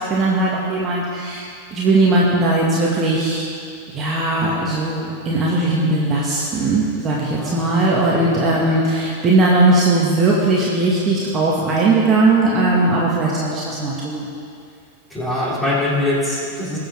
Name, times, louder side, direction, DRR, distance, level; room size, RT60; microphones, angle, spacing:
voice 1, 0.0-3.5 3.9-14.3, right 2 dB, 25° right, -5 dB, 2.0 m, -18 dB
voice 2, 7.4-7.8 8.1-8.3 15.1-16.8, left 1 dB, 10° left, -6 dB, 3.4 m, -23 dB
21.5 x 7.2 x 3.9 m, 2.4 s
figure-of-eight pair, 90°, 0 cm